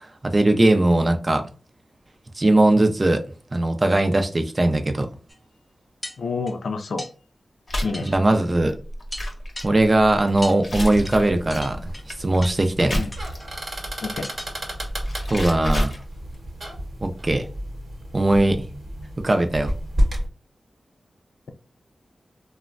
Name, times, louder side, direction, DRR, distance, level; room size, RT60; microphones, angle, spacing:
voice 1, 0.2-1.5 2.4-3.2 3.5-5.1 8.0-8.8 9.6-11.9 12.2-13.0 15.3-15.9 17.0-17.5 18.1-18.6 19.2-19.7, right 2 dB, 35° right, 0.5 m, -19 dB
sound 1, 5.3-5.4 6.0-6.6 7.0-7.1 7.9-8.2 8.6-8.7 9.1-9.7 10.4-10.6 11.1-11.2 11.5-12.1 12.4-12.7 13.1-13.5 14.2-14.5 14.8-14.9 15.3-15.6 15.9-16.0, left 1 dB, 15° left, 0.6 m, -38 dB
voice 2, 6.2-7.1 7.8-8.1 12.9-13.1 14.0-14.3, left 4 dB, 85° left, 0.4 m, -28 dB
sound 2, 7.7-13.6 14.7-16.5, left 1 dB, 55° left, 0.7 m, -30 dB
sound 3, 10.8-20.3, equal, 55° right, 1.0 m, -31 dB
3.1 x 2.1 x 2.4 m
wide cardioid pair, 70°, 0 cm